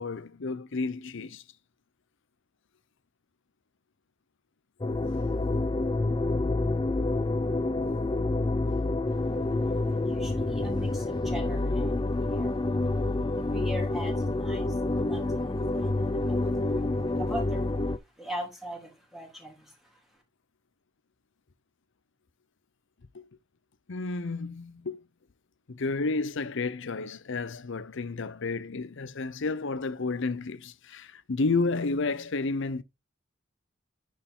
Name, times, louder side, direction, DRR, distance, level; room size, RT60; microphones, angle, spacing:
voice 1, 0.0-1.4 23.1-23.3 23.9-25.0 25.7-32.8, left 3 dB, 65° left, 0.7 m, -31 dB
sound 1, 4.8-18.0, left 2 dB, 20° left, 0.5 m, -28 dB
voice 2, 9.1-20.2, equal, ahead, 3.4 m, -42 dB
10.0 x 4.5 x 3.8 m
head